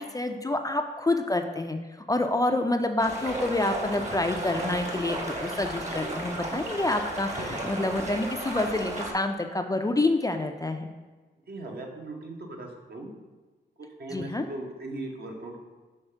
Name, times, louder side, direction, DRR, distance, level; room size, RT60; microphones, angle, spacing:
voice 1, 0.0-1.8 2.1-10.9 14.1-14.5, left 2 dB, 20° left, 5 dB, 0.4 m, -27 dB
sound 1, 3.0-9.1, right 1 dB, 40° right, 1.3 m, -34 dB
voice 2, 11.5-13.1 13.8-15.6, right 2 dB, 60° right, 1 dB, 1.1 m, -38 dB
5.7 x 3.3 x 5.6 m, 1.3 s
cardioid pair, 75°, 19 cm